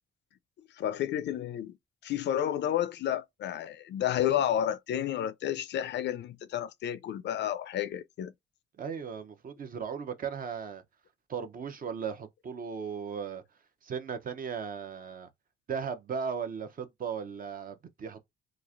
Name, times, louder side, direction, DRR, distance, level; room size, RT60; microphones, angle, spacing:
voice 1, 0.8-1.7 2.0-8.3, left 11 dB, 60° left, 0.4 m, -31 dB
voice 2, 8.8-10.8 11.3-13.4 13.8-15.3 15.7-18.2, right 6 dB, 45° right, 0.7 m, -37 dB
3.0 x 2.4 x 2.5 m
cardioid pair, 90°, 20 cm